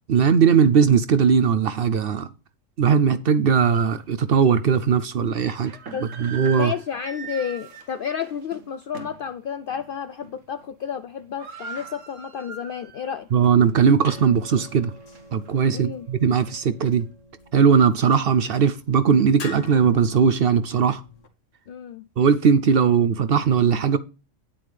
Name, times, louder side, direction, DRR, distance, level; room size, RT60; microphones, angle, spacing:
voice 1, 0.1-2.3 2.8-5.7 6.2-6.7 13.3-14.9 15.3-17.1 17.5-21.0 22.2-24.0, right 6 dB, 60° right, 0.7 m, -19 dB
sound 1, 3.7-3.8 4.4-4.5 5.4-9.3 9.7-9.9 10.2-10.6 10.9-11.0 11.2-13.1 13.5-13.6 14.3-15.6, right 5 dB, 85° right, 1.5 m, -40 dB
voice 2, 6.5-13.3 15.7-16.1 21.7-22.1, left 7 dB, 60° left, 0.6 m, -31 dB
sound 2, 13.2-21.3, left 3 dB, 80° left, 1.7 m, -45 dB
9.3 x 8.6 x 3.3 m
omnidirectional pair, 1.3 m